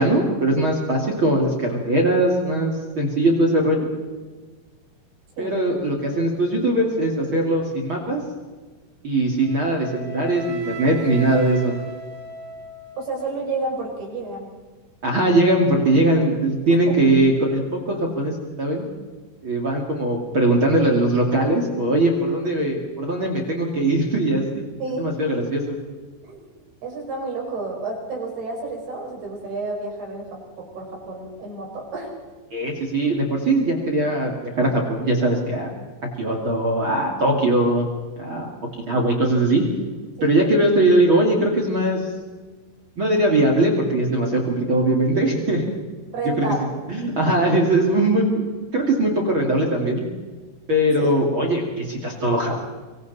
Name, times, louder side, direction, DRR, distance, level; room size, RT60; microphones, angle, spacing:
voice 1, 0.0-3.9 5.4-8.2 9.0-11.8 15.0-18.9 19.4-24.6 25.0-25.8 32.5-35.7 36.2-37.9 38.2-38.5 38.8-39.7 40.2-42.1 43.0-45.6 46.4-46.5 46.9-48.3 48.7-50.0 50.7-52.6, right 1 dB, 35° right, 1 dB, 2.4 m, -20 dB
Wind instrument woodwind instrument, 9.4-13.5, right 4 dB, 75° right, 4.6 m, -38 dB
voice 2, 13.0-14.5 16.7-17.0 24.8-25.1 26.2-30.3 30.6-32.1 38.9-39.0 40.2-40.3 46.1-46.7 51.0-51.1, right 3 dB, 55° right, 0 dB, 7.0 m, -30 dB
25.5 x 24.5 x 4.2 m, 1.4 s
omnidirectional pair, 5.4 m